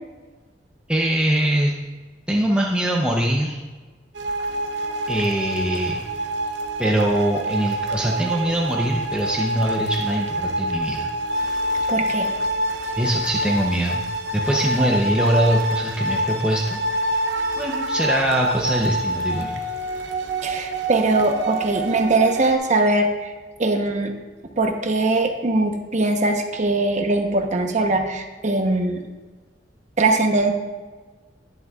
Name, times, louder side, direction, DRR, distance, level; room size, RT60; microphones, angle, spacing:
voice 1, 0.9-1.7 2.3-3.6 5.1-6.0 6.8-11.1 13.0-14.0 14.3-16.8 17.6-19.6, right 1 dB, 5° right, -2 dB, 0.6 m, -22 dB
sound 1, 4.1-22.6, right 1 dB, 80° right, 0.8 m, -26 dB
voice 2, 11.7-12.3 20.4-23.3 23.6-24.1 24.6-29.0 30.0-30.5, right 2 dB, 45° right, 4 dB, 0.9 m, -21 dB
11.5 x 10.5 x 2.4 m, 1.3 s
head